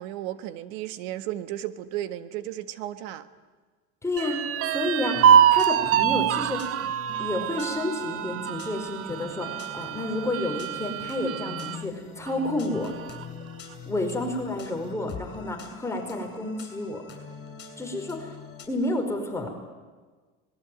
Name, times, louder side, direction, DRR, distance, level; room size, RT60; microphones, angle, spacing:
voice 1, 0.0-3.3, right 13 dB, 80° right, 11 dB, 1.7 m, -34 dB
voice 2, 4.0-4.4 4.7-6.7 7.2-12.9 13.8-17.0 17.8-18.3 18.7-19.7, left 1 dB, 10° left, 2 dB, 5.0 m, -30 dB
sound 1, 4.2-11.8 12.3-12.4 12.8-13.4, right 9 dB, 45° right, 0.9 m, -24 dB
sound 2, 5.1-18.7, left 6 dB, 35° left, 7.1 m, -43 dB
25.5 x 20.5 x 9.3 m, 1.4 s
supercardioid pair, 115°, 31 cm